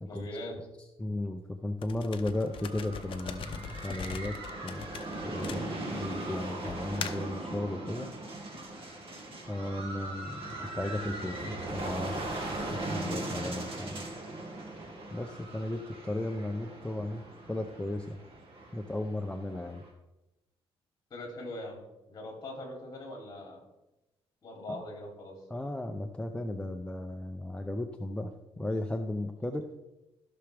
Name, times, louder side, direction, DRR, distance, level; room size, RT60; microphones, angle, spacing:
voice 1, 0.0-0.6 21.1-21.8 22.1-23.6 24.4-25.3, left 1 dB, 40° left, 0 dB, 3.0 m, -41 dB
voice 2, 0.8-4.4 4.6-4.8 5.2-8.1 9.5-14.0 15.1-17.2 17.5-18.2 18.7-19.8 24.7-24.8 25.5-29.7, left 1 dB, 10° left, 4 dB, 0.5 m, -35 dB
sound 1, 1.8-6.1 6.7-7.3, left 7 dB, 55° left, 0.7 m, -41 dB
sound 2, 2.2-19.9, right 2 dB, 60° right, 2.0 m, -39 dB
14.5 x 6.0 x 3.4 m, 0.97 s
cardioid pair, 135°, 11 cm